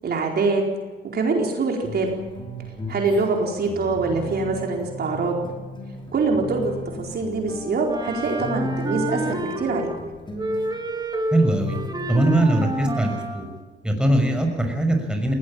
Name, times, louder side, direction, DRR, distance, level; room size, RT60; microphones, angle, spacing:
voice 1, 0.0-0.6 1.0-2.1 2.9-5.3 6.1-9.9, right 3 dB, 55° right, 1 dB, 4.4 m, -24 dB
sound 1, 1.8-11.0 11.5-12.5, left 1 dB, 25° left, 5.1 m, -36 dB
Wind instrument woodwind instrument, 7.9-10.1 10.4-13.5, right 1 dB, 20° right, 3.2 m, -29 dB
voice 2, 11.3-11.8 12.1-13.5 13.8-15.3, right 1 dB, 5° right, 3 dB, 6.0 m, -21 dB
20.0 x 18.0 x 8.8 m, 1.4 s
cardioid pair, 90°, 20 cm